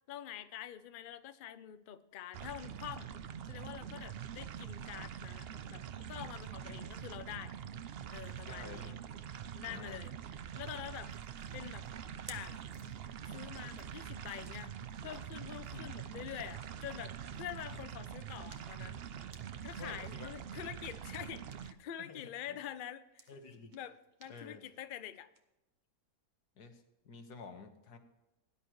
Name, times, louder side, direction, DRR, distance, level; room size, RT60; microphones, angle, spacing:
voice 1, 0.1-3.1 3.5-7.5 8.1-8.9 9.6-10.1 10.6-11.2 11.5-11.9 12.3-12.6 13.3-14.8 15.0-19.0 19.6-23.3 23.7-25.3, left 10 dB, 55° left, 12 dB, 0.6 m, -46 dB
sound 1, 2.3-21.7, right 8 dB, 65° right, 0.6 m, -45 dB
voice 2, 8.4-9.0 9.6-10.0 15.7-15.9 17.7-17.8 19.8-20.4 22.0-22.6 23.3-23.7 24.3-24.7 26.6-28.0, left 4 dB, 75° left, 6 dB, 1.9 m, -50 dB
sound 2, 11.1-21.9 22.2-25.4, right 3 dB, 30° right, 1.3 m, -61 dB
18.5 x 11.0 x 3.2 m, 0.97 s
omnidirectional pair, 1.7 m